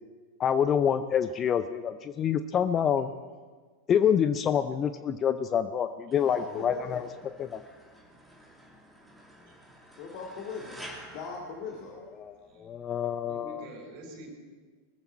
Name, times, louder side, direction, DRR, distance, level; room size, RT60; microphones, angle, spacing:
voice 1, 0.4-3.1 3.9-7.0 7.4-7.6 12.2-13.6, left 8 dB, 25° left, 12 dB, 0.5 m, -27 dB
sound 1, 6.1-12.4, equal, ahead, 2.7 m, -50 dB
voice 2, 6.2-7.1 10.0-10.8 11.1-12.0, left 5 dB, 45° left, -1 dB, 2.1 m, -39 dB
voice 3, 12.4-12.7 13.2-14.3, right 1 dB, 40° right, -1 dB, 4.2 m, -46 dB
20.5 x 14.0 x 4.4 m, 1.5 s
figure-of-eight pair, 90°, 0 cm